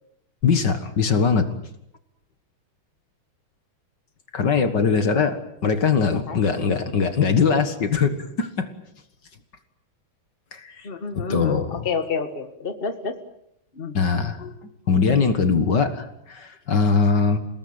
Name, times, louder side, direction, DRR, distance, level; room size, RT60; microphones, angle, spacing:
voice 1, 0.4-1.5 4.3-8.7 10.5-10.9 11.1-11.9 13.9-14.5 14.9-17.4, left 5 dB, 60° left, 9 dB, 2.2 m, -21 dB
voice 2, 6.1-6.4 10.8-13.1 13.7-14.0, left 5 dB, 30° left, 7 dB, 1.8 m, -29 dB
29.0 x 18.5 x 8.8 m, 0.78 s
omnidirectional pair, 2.3 m